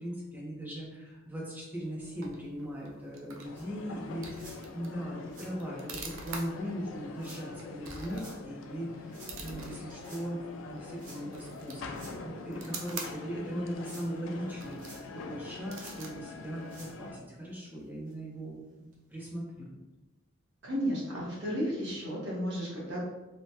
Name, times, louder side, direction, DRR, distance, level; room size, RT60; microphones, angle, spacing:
voice 1, 0.0-9.1 9.4-19.8, equal, 10° right, -4 dB, 0.6 m, -39 dB
sound 1, 1.7-17.3, right 4 dB, 75° right, 0.5 m, -48 dB
sound 2, 3.4-17.2, left 3 dB, 70° left, 0.3 m, -45 dB
sound 3, 3.6-3.7 4.3-4.6 5.2-5.5 6.2-6.5 7.1-7.4 8.1-8.4 9.1-9.4 9.9-10.2 11.0-11.2 11.9-12.1 12.8-13.1 13.6-14.1 14.8-15.3 15.7-16.0 16.6-16.9 17.5-17.6 18.1-18.2 18.9-19.0, right 2 dB, 40° right, 0.7 m, -51 dB
voice 2, 20.6-23.0, equal, 55° right, -6 dB, 1.1 m, -33 dB
3.2 x 2.2 x 2.7 m, 1.1 s
head